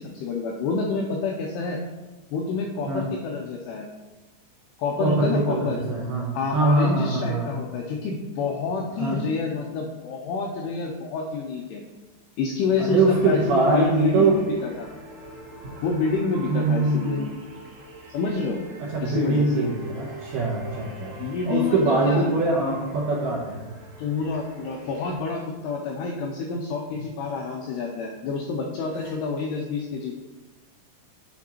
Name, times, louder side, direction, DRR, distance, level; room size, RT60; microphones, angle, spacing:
voice 1, 0.0-1.8 2.3-3.9 4.8-5.8 6.3-11.8 12.4-14.9 15.8-17.2 18.1-18.6 19.0-19.6 21.2-22.3 24.0-30.2, left 4 dB, 85° left, 0 dB, 2.4 m, -28 dB
voice 2, 5.0-7.5 9.0-9.2 12.8-14.4 16.5-17.3 18.8-23.7 29.0-29.1, right 2 dB, 75° right, -3 dB, 2.4 m, -23 dB
sound 1, 13.0-25.1, right 2 dB, 40° right, 2.2 m, -43 dB
8.4 x 6.0 x 2.9 m, 1.2 s
omnidirectional pair, 5.4 m